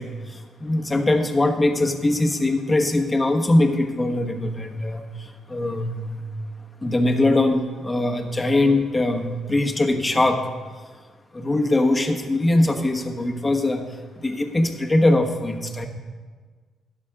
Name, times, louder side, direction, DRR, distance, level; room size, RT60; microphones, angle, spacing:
voice 1, 0.0-6.2 6.8-10.5 11.3-15.9, left 2 dB, 20° left, 4 dB, 1.3 m, -22 dB
12.5 x 11.5 x 3.8 m, 1.5 s
cardioid pair, 90°, 0 cm